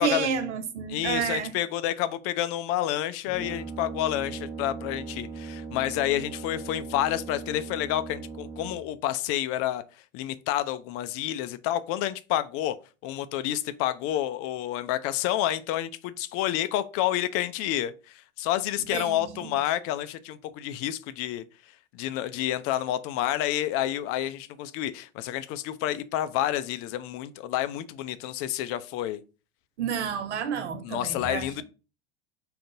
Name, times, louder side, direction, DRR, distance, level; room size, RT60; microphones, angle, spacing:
voice 1, 0.0-1.5 18.9-19.5 29.8-31.6, right 7 dB, 75° right, 0.9 m, -30 dB
voice 2, 0.9-9.8 10.1-12.7 13.0-21.4 21.9-29.2 30.8-31.6, left 13 dB, 40° left, 0.5 m, -29 dB
Brass instrument, 3.2-9.0, right 4 dB, 5° right, 1.2 m, -39 dB
5.0 x 2.5 x 3.8 m
hypercardioid pair, 80°, 35 cm